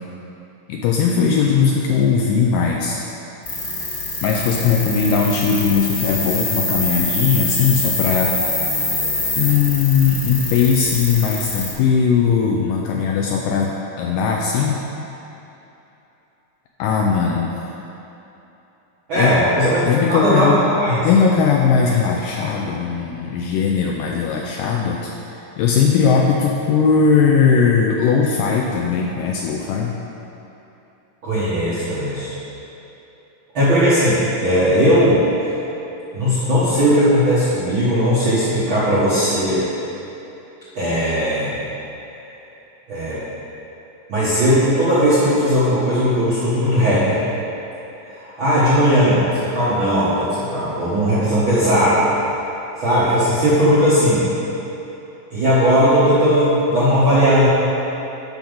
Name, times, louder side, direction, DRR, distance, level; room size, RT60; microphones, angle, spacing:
voice 1, 0.7-3.0 4.2-8.4 9.4-14.8 16.8-17.6 19.1-19.3 19.9-20.6 21.0-29.9, left 6 dB, 85° left, -1 dB, 1.9 m, -18 dB
sound 1, 3.4-11.7, left 2 dB, 50° left, 1.0 m, -24 dB
voice 2, 19.1-19.8 20.1-21.0 31.2-32.3 33.5-35.6 36.1-39.7 40.7-41.5 42.9-43.2 44.1-47.2 48.1-52.1 52.8-54.3 55.3-57.5, equal, 75° right, -11 dB, 1.1 m, -17 dB
10.5 x 6.2 x 3.9 m, 3.0 s
omnidirectional pair, 4.4 m